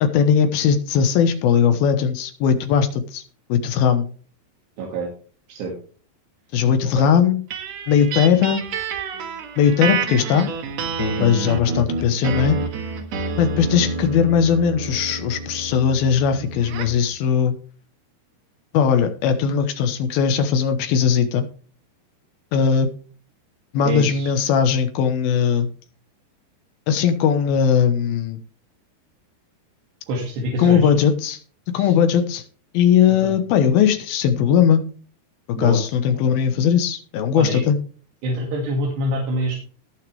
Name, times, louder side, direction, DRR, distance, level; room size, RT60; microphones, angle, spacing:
voice 1, 0.0-3.2 3.5-4.1 6.5-7.4 7.9-8.6 9.6-10.5 11.0-12.6 13.4-17.6 18.7-21.4 22.5-22.9 23.7-25.7 26.9-28.4 30.6-31.4 31.7-32.4 32.7-34.8 35.6-37.8, left 7 dB, 70° left, 8 dB, 2.7 m, -19 dB
voice 2, 4.8-5.1 5.5-5.7 7.0-7.1 23.8-24.3 30.1-30.9 31.8-31.9 33.2-33.3 35.5-35.8 37.4-37.6 38.2-39.6, right 1 dB, 80° right, -1 dB, 4.3 m, -26 dB
sound 1, 7.5-17.0, right 4 dB, 60° right, 1.9 m, -28 dB
19.5 x 6.5 x 3.3 m, 0.40 s
omnidirectional pair, 4.8 m